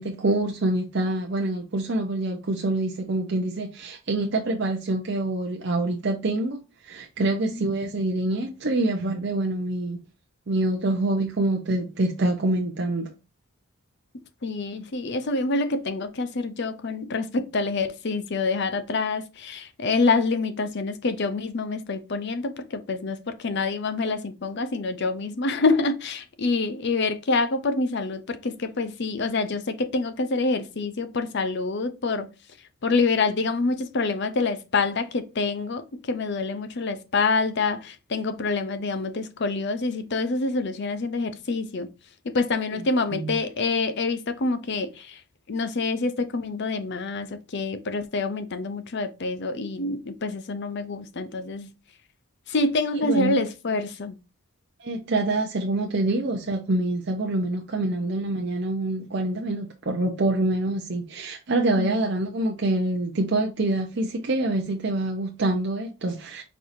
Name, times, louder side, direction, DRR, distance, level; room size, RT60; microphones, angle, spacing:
voice 1, 0.0-10.0 10.5-13.1 43.1-43.3 53.0-53.4 54.8-66.4, right 2 dB, 50° right, 0.6 m, -26 dB
voice 2, 7.2-7.6 14.4-32.3 32.8-41.9 42.2-45.2 45.5-51.7 52.5-54.1 61.8-61.9, left 3 dB, 50° left, 0.6 m, -26 dB
4.6 x 4.0 x 2.6 m
head